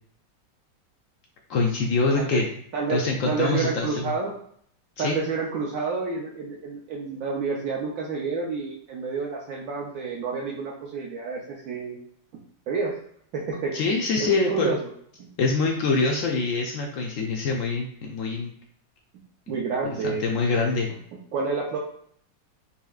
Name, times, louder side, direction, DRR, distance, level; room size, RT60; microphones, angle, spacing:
voice 1, 1.5-2.5 2.9-4.1 5.0-5.2 13.7-14.7 15.4-18.5 19.5-19.6 20.0-20.9, left 3 dB, 85° left, 0 dB, 0.7 m, -25 dB
voice 2, 2.7-4.3 5.0-12.0 12.7-12.9 13.3-13.7 14.2-14.9 15.2-15.3 19.5-20.3 20.7-20.8 21.3-21.8, right 4 dB, 65° right, -2 dB, 0.9 m, -29 dB
5.6 x 2.8 x 2.3 m, 0.64 s
omnidirectional pair, 2.0 m